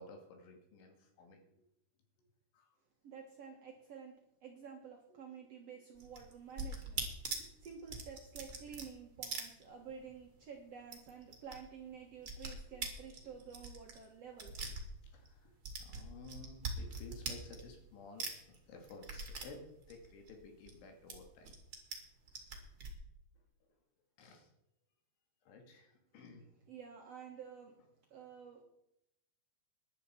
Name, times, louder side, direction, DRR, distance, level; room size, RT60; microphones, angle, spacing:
voice 1, 0.0-1.4 2.5-2.7 7.3-7.5 14.6-14.8 15.0-21.6 24.2-24.5 25.4-26.5, left 3 dB, 85° left, 3 dB, 4.7 m, -54 dB
voice 2, 3.0-4.1 4.4-14.8 26.7-27.7 28.1-28.6, right 6 dB, 90° right, 0 dB, 1.4 m, -51 dB
sound 1, 6.0-10.2 10.4-10.5 10.8-11.6 11.8-15.3 15.6-17.9 18.2-20.8 21.1-22.0 22.3-22.9, right 4 dB, 40° right, 1.8 m, -43 dB
15.5 x 11.0 x 4.5 m, 0.81 s
omnidirectional pair, 5.3 m